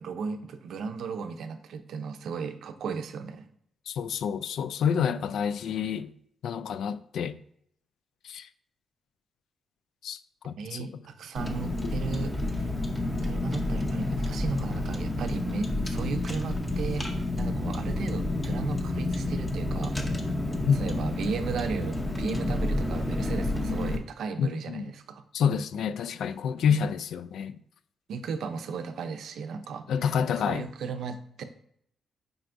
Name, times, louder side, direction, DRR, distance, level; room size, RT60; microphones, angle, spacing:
voice 1, 0.0-3.4 10.6-12.7 13.2-17.1 17.4-20.0 20.7-25.2 28.1-31.4, right 5 dB, 65° right, 0.6 m, -35 dB
voice 2, 3.9-6.1 6.4-7.3 8.2-8.5 10.0-10.2 10.4-10.9 20.7-20.8 24.4-24.8 25.3-27.5 29.9-30.6, left 7 dB, 70° left, 0.3 m, -28 dB
Car, 11.4-24.0, left 2 dB, 10° left, 0.7 m, -30 dB
7.8 x 5.0 x 2.6 m
wide cardioid pair, 180°, 0 cm